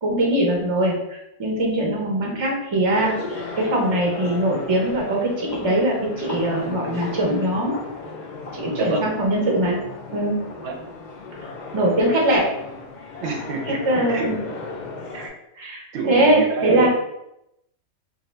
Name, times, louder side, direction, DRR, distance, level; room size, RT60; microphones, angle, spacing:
voice 1, 0.0-7.8 8.5-9.8 10.1-10.4 11.7-12.5 13.8-14.4 15.6-16.9, right 1 dB, 35° right, -1 dB, 0.5 m, -21 dB
sound 1, 2.9-15.3, left 3 dB, 90° left, 0.4 m, -35 dB
voice 2, 8.7-9.1 10.6-10.7 13.2-14.3 15.1-15.3 15.9-16.9, right 4 dB, 60° right, 1 dB, 0.8 m, -28 dB
2.8 x 2.5 x 3.2 m, 0.84 s
omnidirectional pair, 1.5 m